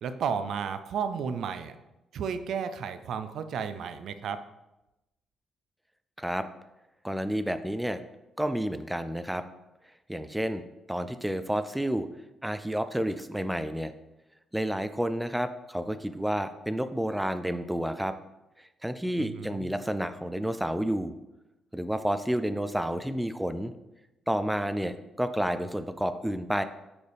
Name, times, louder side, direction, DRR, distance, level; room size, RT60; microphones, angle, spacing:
voice 1, 0.0-1.8 2.1-4.4 19.2-19.7, right 6 dB, 70° right, 11 dB, 0.5 m, -33 dB
voice 2, 7.0-8.0 8.4-9.4 10.1-10.6 10.9-12.1 12.4-13.9 14.5-18.1 18.8-21.1 21.7-23.7 24.3-26.6, equal, 5° right, 11 dB, 0.4 m, -30 dB
8.5 x 4.2 x 3.5 m, 0.96 s
cardioid pair, 90°, 0 cm